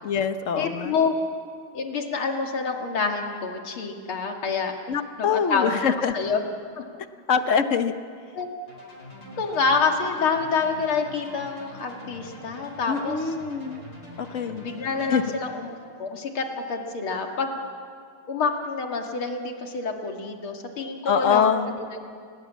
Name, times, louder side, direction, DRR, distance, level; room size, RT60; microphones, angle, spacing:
voice 1, 0.0-0.9 4.9-6.1 7.3-8.0 12.9-13.8 14.2-14.7 15.1-15.2 21.0-21.7, left 6 dB, 45° left, 9 dB, 1.1 m, -24 dB
voice 2, 0.6-1.1 1.7-4.7 5.2-5.8 6.1-6.4 6.8-6.9 8.3-8.5 9.4-13.2 14.5-15.7 16.0-17.6 18.3-22.0, left 4 dB, 90° left, 3 dB, 3.0 m, -27 dB
sound 1, 8.7-15.5, left 1 dB, 30° left, 5.1 m, -44 dB
29.0 x 19.0 x 8.3 m, 2.2 s
omnidirectional pair, 2.3 m